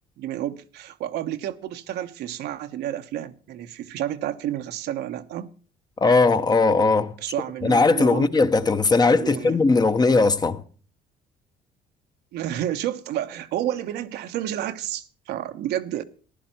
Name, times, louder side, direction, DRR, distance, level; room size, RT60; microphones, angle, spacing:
voice 1, 0.2-5.5 7.2-8.3 9.2-9.6 12.3-16.0, right 12 dB, 75° right, 1.1 m, -30 dB
voice 2, 6.0-7.1 7.6-10.6, left 3 dB, 25° left, 1.0 m, -19 dB
15.0 x 11.0 x 4.4 m
cardioid pair, 110°, 17 cm